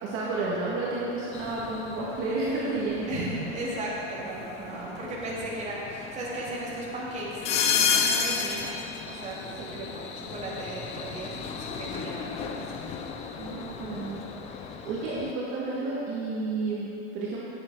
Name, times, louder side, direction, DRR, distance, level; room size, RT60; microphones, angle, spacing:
voice 1, 0.0-3.1 4.7-5.0 13.4-17.5, right 3 dB, 35° right, -7 dB, 2.0 m, -31 dB
sound 1, 1.3-15.3, left 6 dB, 20° left, 0.4 m, -33 dB
voice 2, 3.1-12.6, right 1 dB, 20° right, -6 dB, 2.4 m, -36 dB
10.0 x 9.0 x 4.8 m, 2.9 s
hypercardioid pair, 135°, 37 cm